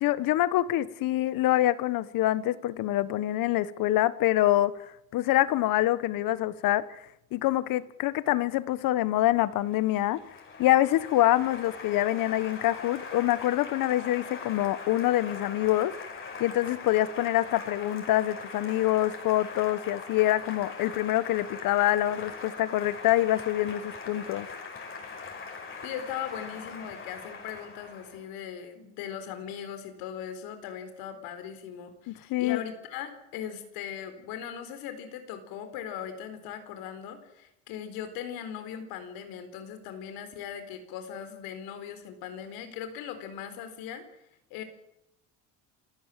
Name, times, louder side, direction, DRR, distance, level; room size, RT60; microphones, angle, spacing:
voice 1, 0.0-4.7 5.1-7.0 7.3-10.2 10.6-15.9 16.4-24.5 32.1-32.6, left 14 dB, 65° left, 16 dB, 1.4 m, -25 dB
Applause, 9.4-28.2, left 4 dB, 35° left, 5.9 m, -41 dB
voice 2, 25.8-44.1 44.5-44.6, left 9 dB, 80° left, 9 dB, 4.3 m, -39 dB
28.0 x 15.0 x 7.6 m, 0.82 s
cardioid pair, 105°, 36 cm